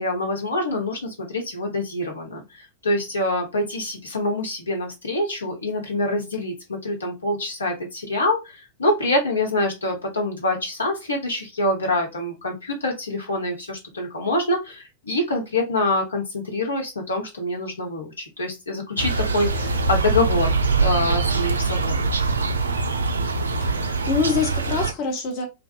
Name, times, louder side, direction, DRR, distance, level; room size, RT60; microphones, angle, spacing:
voice 1, 0.0-22.1, left 1 dB, 75° left, 0.8 m, -25 dB
sound 1, 19.0-24.9, right 3 dB, 70° right, 0.4 m, -23 dB
voice 2, 23.6-25.5, left 5 dB, 40° left, 0.8 m, -25 dB
2.6 x 2.2 x 2.4 m
figure-of-eight pair, 90°, 0 cm